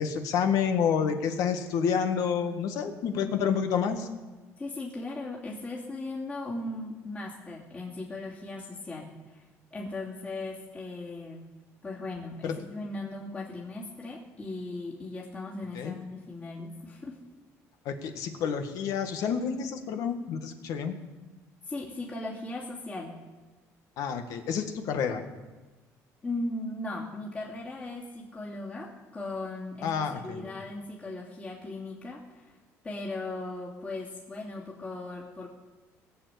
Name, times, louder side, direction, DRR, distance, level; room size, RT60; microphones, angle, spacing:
voice 1, 0.0-4.1 12.4-12.6 15.7-16.0 17.8-21.0 24.0-25.2 29.8-30.5, left 7 dB, 70° left, 7 dB, 1.6 m, -29 dB
voice 2, 4.6-11.4 11.8-17.2 21.6-23.1 26.2-32.5 32.8-35.5, left 2 dB, 25° left, -5 dB, 2.8 m, -38 dB
19.5 x 7.2 x 8.3 m, 1.2 s
cardioid pair, 130°, 6 cm